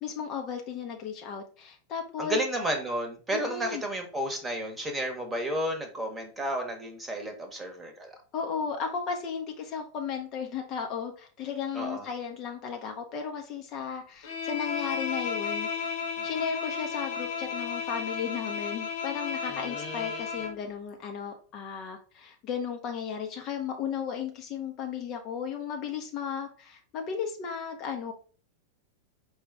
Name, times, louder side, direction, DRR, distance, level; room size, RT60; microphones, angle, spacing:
voice 1, 0.0-2.4 3.3-3.8 8.3-15.9 16.2-28.1, left 7 dB, 35° left, 3 dB, 0.7 m, -35 dB
voice 2, 2.2-8.2 11.7-12.0 16.2-16.3 19.5-20.2, right 1 dB, 15° right, 4 dB, 1.1 m, -32 dB
Bowed string instrument, 14.2-20.6, left 6 dB, 55° left, 1.1 m, -33 dB
4.8 x 2.4 x 4.6 m, 0.39 s
figure-of-eight pair, 90°, 0 cm